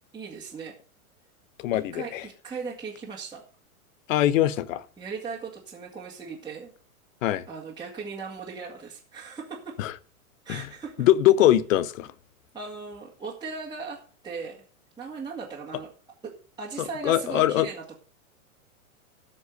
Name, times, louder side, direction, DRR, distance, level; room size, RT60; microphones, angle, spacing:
voice 1, 0.1-0.7 1.9-3.4 5.0-6.7 7.5-9.8 10.4-11.0 12.5-14.6 15.0-15.9 16.2-18.0, right 5 dB, 10° right, 2.2 m, -38 dB
voice 2, 1.6-2.2 4.1-4.8 7.2-7.4 9.8-9.9 10.5-10.7 11.0-12.1 16.8-17.7, left 13 dB, 60° left, 1.1 m, -22 dB
13.5 x 5.4 x 6.6 m
hypercardioid pair, 135°, 44 cm